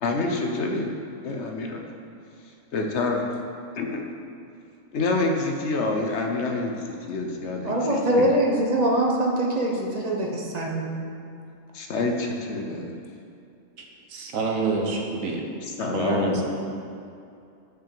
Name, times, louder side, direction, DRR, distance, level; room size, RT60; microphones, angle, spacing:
voice 1, 0.0-0.9 1.2-1.8 2.7-3.2 3.8-4.0 4.9-8.3 11.7-12.9 15.8-16.4, left 3 dB, 60° left, 2 dB, 1.0 m, -27 dB
voice 2, 7.6-11.0, right 1 dB, 35° right, 0 dB, 0.9 m, -23 dB
voice 3, 14.1-15.4 15.8-16.4, right 3 dB, 80° right, 0 dB, 1.4 m, -27 dB
6.1 x 5.6 x 6.9 m, 2.6 s
omnidirectional pair, 1.4 m